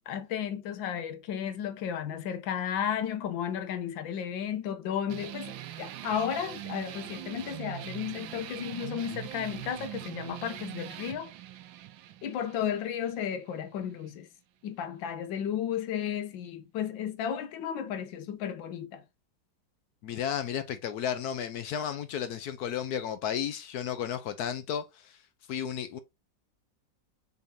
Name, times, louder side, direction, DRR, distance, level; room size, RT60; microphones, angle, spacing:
voice 1, 0.0-11.3 12.2-14.3 14.6-19.0, left 9 dB, 90° left, 1.5 m, -33 dB
sound 1, 5.1-14.1, right 13 dB, 90° right, 1.4 m, -42 dB
voice 2, 20.0-25.1 25.5-26.0, left 9 dB, 70° left, 1.0 m, -33 dB
5.5 x 3.6 x 2.7 m
omnidirectional pair, 2.0 m